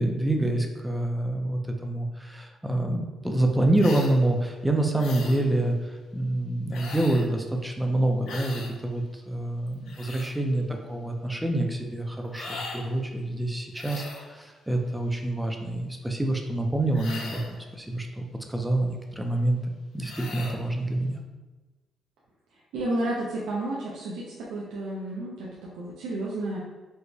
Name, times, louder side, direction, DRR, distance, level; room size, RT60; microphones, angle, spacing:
voice 1, 0.0-19.6 19.9-21.2, right 1 dB, 5° right, 2 dB, 0.5 m, -27 dB
female sharp inhale sounds, 3.8-4.2 5.0-5.4 6.7-7.3 8.3-8.7 9.7-10.3 12.3-12.8 13.7-14.3 16.9-17.6 20.0-20.6, left 3 dB, 80° left, 0.5 m, -39 dB
voice 2, 22.7-26.6, right 1 dB, 85° right, -6 dB, 0.5 m, -31 dB
4.7 x 2.1 x 2.7 m, 1.2 s
cardioid pair, 90°, 0 cm